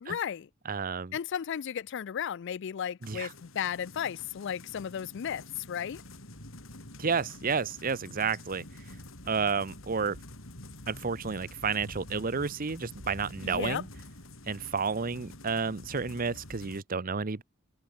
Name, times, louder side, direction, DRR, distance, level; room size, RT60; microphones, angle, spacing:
voice 1, 0.0-0.5 1.1-6.0 13.4-13.8, left 8 dB, 60° left, 0.4 m, -34 dB
voice 2, 0.7-1.1 3.0-3.3 7.0-8.6 9.3-10.2 10.9-13.9 14.5-17.4, right 5 dB, 45° right, 0.9 m, -31 dB
sound 1, 3.0-16.8, left 1 dB, 80° left, 6.2 m, -47 dB
head